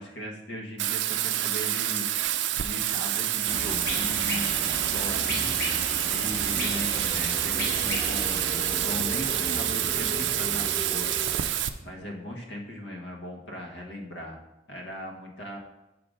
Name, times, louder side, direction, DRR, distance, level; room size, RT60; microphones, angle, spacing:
voice 1, 0.0-2.3 2.6-5.5 6.1-11.1 11.8-14.4 14.7-15.6, left 1 dB, 70° left, 1 dB, 1.2 m, -38 dB
Bathtub (filling or washing), 0.8-11.7, right 12 dB, 75° right, 0.4 m, -28 dB
sound 1, 3.4-11.4, left 1 dB, 50° left, 1.7 m, -35 dB
sound 2, 6.4-11.4, left 1 dB, ahead, 0.4 m, -42 dB
6.7 x 3.9 x 4.9 m, 0.96 s
head